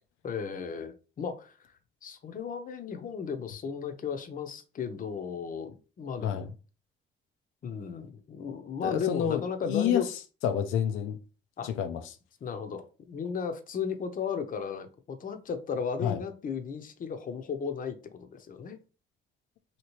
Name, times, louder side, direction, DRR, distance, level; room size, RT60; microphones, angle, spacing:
voice 1, 0.2-6.5 7.6-10.1 11.6-11.7 12.4-18.8, left 6 dB, 45° left, 0.6 m, -35 dB
voice 2, 8.8-9.4 9.7-10.0 10.4-11.2 11.6-12.0 16.0-16.2, left 9 dB, 90° left, 0.4 m, -28 dB
2.9 x 2.8 x 3.0 m
cardioid pair, 90°, 20 cm